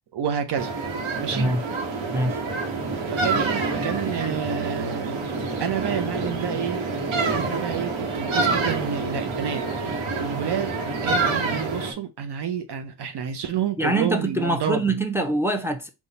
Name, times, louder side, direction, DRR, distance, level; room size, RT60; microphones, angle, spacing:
voice 1, 0.1-0.7 1.2-1.5 3.1-6.8 7.3-14.8, right 8 dB, 60° right, 0.7 m, -29 dB
sound 1, 0.5-11.9, right 3 dB, 75° right, 1.2 m, -27 dB
voice 2, 1.3-1.6 2.1-2.4 13.8-15.9, right 1 dB, 5° right, 0.7 m, -24 dB
4.0 x 2.4 x 4.0 m
cardioid pair, 65°, 47 cm